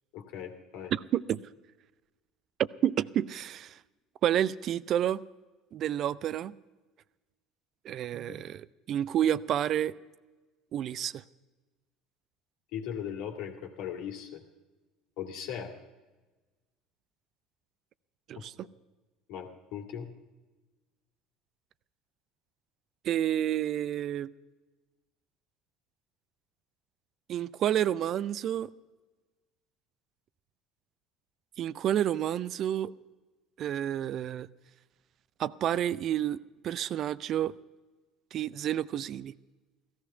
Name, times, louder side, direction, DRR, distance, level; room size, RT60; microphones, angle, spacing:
voice 1, 0.1-0.9 8.3-8.4 12.7-14.4 15.2-15.7 19.3-20.1, left 9 dB, 60° left, 2.1 m, -38 dB
voice 2, 0.9-1.4 2.8-3.8 4.2-5.2 5.7-6.5 7.8-9.9 10.7-11.2 18.3-18.5 23.0-24.3 27.3-28.7 31.6-32.9 33.6-34.5 35.4-37.5 38.3-39.3, right 11 dB, 50° right, 0.4 m, -30 dB
16.0 x 14.5 x 5.6 m
hypercardioid pair, 65°, 0 cm